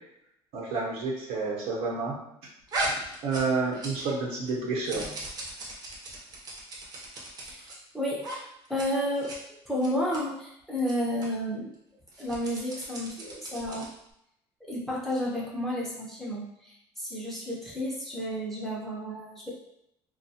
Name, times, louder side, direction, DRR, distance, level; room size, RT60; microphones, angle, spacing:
voice 1, 0.5-2.1 3.2-5.1, right 4 dB, 75° right, -3 dB, 0.9 m, -29 dB
sound 1, 2.7-4.2 4.5-7.8 8.2-8.4 8.6-8.9 9.1-9.4 9.8-10.2 10.8-10.9 11.2-11.3 12.1-14.0, right 1 dB, 40° right, 0.7 m, -37 dB
voice 2, 4.9-5.2 7.4-7.7 7.9-8.4 8.7-9.3 9.6-11.7 12.2-13.9 14.6-19.5, equal, ahead, -5 dB, 0.7 m, -32 dB
2.5 x 2.3 x 2.7 m, 0.77 s
cardioid pair, 135°, 11 cm